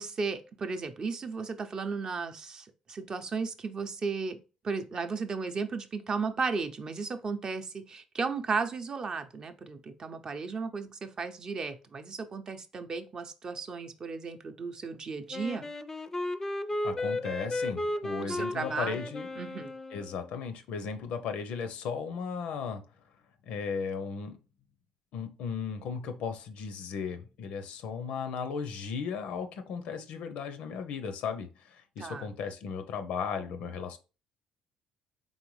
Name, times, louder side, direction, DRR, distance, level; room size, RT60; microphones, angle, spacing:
voice 1, 0.0-4.4 4.6-15.7 18.2-19.1 19.4-19.7 32.0-32.3, right 4 dB, 40° right, 0.5 m, -35 dB
Wind instrument woodwind instrument, 15.3-20.4, left 2 dB, 20° left, 0.4 m, -34 dB
voice 2, 16.8-19.3 19.9-22.8 23.5-24.4 25.1-34.0, left 6 dB, 80° left, 0.6 m, -36 dB
3.9 x 3.5 x 3.1 m
cardioid pair, 90°, 2 cm